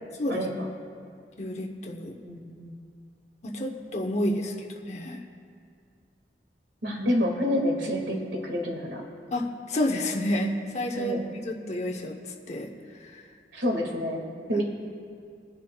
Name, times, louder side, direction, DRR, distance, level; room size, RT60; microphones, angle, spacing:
voice 1, 0.3-0.6 2.2-2.8 6.8-9.1 10.9-11.3 13.5-14.6, equal, 90° right, 1 dB, 1.8 m, -28 dB
voice 2, 1.4-2.2 3.4-5.2 9.3-12.2 12.5-12.7 13.1-13.2 14.5-14.6, left 1 dB, 40° left, 1 dB, 0.8 m, -30 dB
25.0 x 10.0 x 2.3 m, 2.3 s
head